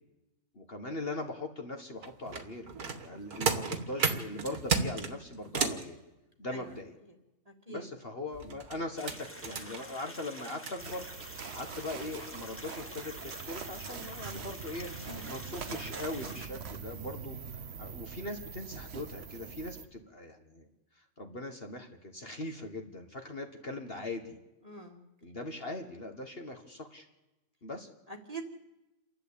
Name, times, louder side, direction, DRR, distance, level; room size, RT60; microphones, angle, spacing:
voice 1, 0.5-6.0 6.4-7.0 7.7-11.1 11.5-20.7 21.0-24.4 25.2-27.1 27.6-27.9, left 2 dB, 35° left, 4 dB, 1.6 m, -40 dB
sound 1, 2.0-5.8 8.3-10.7 11.5-11.6 12.0-12.2 12.7-12.9 13.3-13.4, right 5 dB, 65° right, 2.0 m, -34 dB
voice 2, 7.5-7.9 15.1-15.2 24.6-25.0 28.1-28.4, right 3 dB, 25° right, 3 dB, 1.7 m, -43 dB
sound 2, 9.0-16.5, equal, 10° left, 1.7 m, -48 dB
sound 3, 10.8-19.8, right 6 dB, 45° right, 1.1 m, -43 dB
29.0 x 11.5 x 8.5 m, 0.98 s
omnidirectional pair, 1.7 m